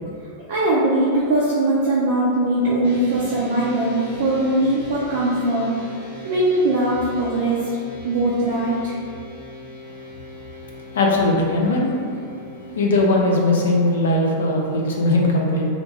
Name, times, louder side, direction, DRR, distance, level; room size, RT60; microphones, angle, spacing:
voice 1, 0.5-5.7 6.2-7.6 8.0-8.9, right 1 dB, 55° right, -6 dB, 0.4 m, -20 dB
sound 1, 2.8-15.0, left 1 dB, 85° left, 1.0 m, -40 dB
voice 2, 10.9-11.9 12.8-15.7, left 2 dB, 65° left, -1 dB, 0.4 m, -19 dB
2.5 x 2.2 x 2.7 m, 2.3 s
figure-of-eight pair, 90°, 0 cm